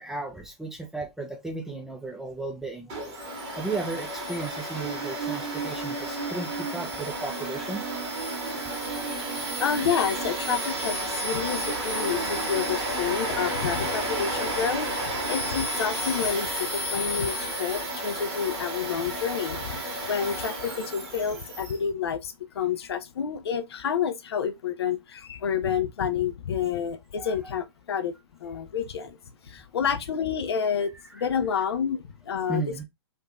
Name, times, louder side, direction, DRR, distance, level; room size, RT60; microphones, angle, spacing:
voice 1, 0.0-3.0 3.6-8.6 9.7-10.2 20.7-20.8 27.2-27.3 31.2-31.3 31.6-31.7 32.5-32.8, right 3 dB, 5° right, 0.5 m, -35 dB
Domestic sounds home sounds, 2.9-21.8, right 1 dB, 35° right, 1.5 m, -32 dB
Human voice, 4.8-12.7, right 7 dB, 70° right, 0.5 m, -38 dB
voice 2, 9.6-28.1 28.4-29.2 29.4-32.6, left 7 dB, 70° left, 0.5 m, -29 dB
3.3 x 2.5 x 2.3 m
figure-of-eight pair, 115°, 14 cm